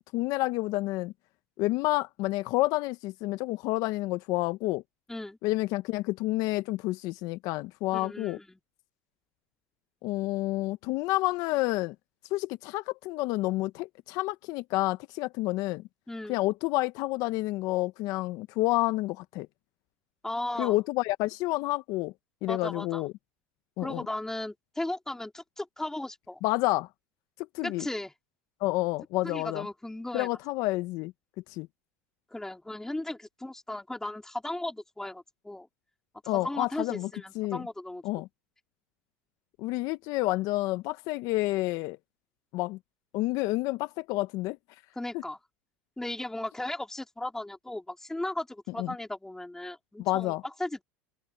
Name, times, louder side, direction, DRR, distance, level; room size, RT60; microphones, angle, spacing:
voice 1, 0.1-1.1 1.6-4.8 5.4-8.4 10.0-11.9 12.3-15.8 16.3-19.5 20.6-22.1 22.4-23.1 23.8-24.0 26.4-26.9 27.5-27.9 28.6-29.7 30.1-31.1 31.5-31.7 36.3-37.1 37.3-37.6 38.0-38.3 39.6-42.0 42.5-42.8 43.1-44.6 48.8-48.9 50.0-50.4, left 19 dB, 60° left, 1.1 m, -29 dB
voice 2, 7.9-8.6 16.1-16.4 20.2-20.8 22.5-23.0 23.8-26.4 27.6-28.1 29.2-30.3 32.3-35.7 36.2-38.0 45.0-45.4 46.0-50.8, left 1 dB, 5° left, 3.5 m, -36 dB
open air
hypercardioid pair, 95°, 7 cm